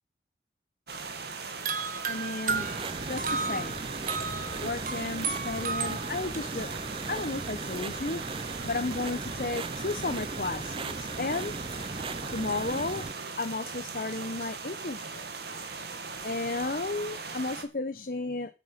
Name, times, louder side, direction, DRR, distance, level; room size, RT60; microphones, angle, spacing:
sound 1, 0.9-17.6, right 4 dB, 70° right, 2.1 m, -39 dB
sound 2, 1.6-6.4, right 4 dB, 50° right, 1.3 m, -33 dB
voice 1, 2.1-2.8 3.1-3.7 4.6-6.7 7.1-8.2 8.6-11.5 12.3-13.1 13.4-15.3 16.2-18.5, left 3 dB, 55° left, 9 dB, 0.9 m, -33 dB
sound 3, 2.5-13.1, right 3 dB, 30° right, 0.5 m, -38 dB
9.5 x 8.1 x 7.4 m, 0.30 s
head